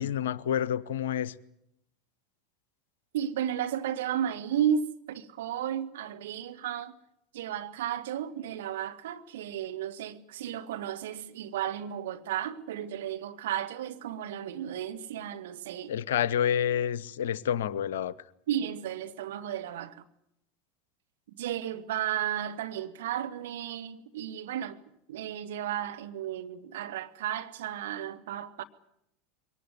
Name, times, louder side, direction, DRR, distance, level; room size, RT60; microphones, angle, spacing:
voice 1, 0.0-1.3 15.9-18.1, left 9 dB, 70° left, 0.8 m, -28 dB
voice 2, 3.1-6.9 7.3-15.9 18.5-20.0 21.3-24.8 25.1-28.6, right 10 dB, 65° right, 1.4 m, -33 dB
22.5 x 18.5 x 9.4 m
figure-of-eight pair, 80°, 0 cm